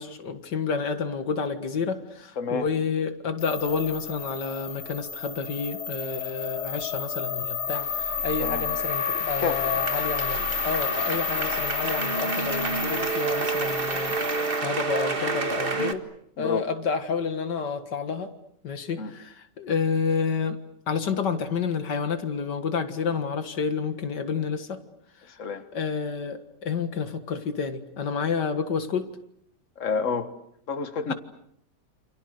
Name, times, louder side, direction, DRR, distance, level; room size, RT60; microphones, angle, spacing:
voice 1, 0.0-16.0 16.4-18.3 18.6-20.6 20.9-24.8 25.7-29.2 31.1-31.2, left 5 dB, 85° left, 9 dB, 2.4 m, -29 dB
voice 2, 2.4-2.7 8.4-8.6 9.4-9.6 16.4-16.7 19.0-19.1 25.3-25.6 29.8-30.3 30.7-31.1, left 5 dB, 50° left, 9 dB, 2.0 m, -29 dB
sound 1, 3.4-14.6, left 7 dB, 70° left, 2.0 m, -31 dB
sound 2, 7.8-15.9, right 4 dB, 35° right, 1.9 m, -30 dB
29.0 x 28.0 x 6.6 m, 0.70 s
omnidirectional pair, 1.8 m